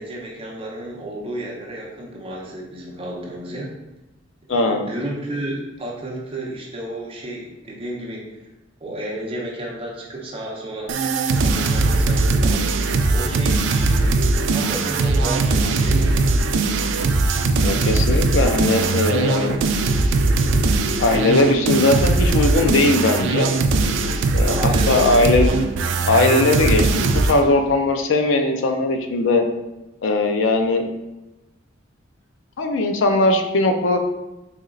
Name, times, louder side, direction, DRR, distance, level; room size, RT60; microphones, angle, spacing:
voice 1, 0.0-3.7 4.5-8.4 8.8-10.9 11.3-16.4 24.5-25.2, right 1 dB, 30° right, -3 dB, 0.7 m, -32 dB
voice 2, 4.5-4.9 17.6-19.6 21.0-23.5 24.3-25.5 26.1-29.5 30.0-30.9 32.6-34.0, left 2 dB, 75° left, 5 dB, 0.4 m, -19 dB
sound 1, 10.9-27.4, right 3 dB, 70° right, 0.3 m, -20 dB
4.2 x 2.8 x 2.5 m, 1.0 s
head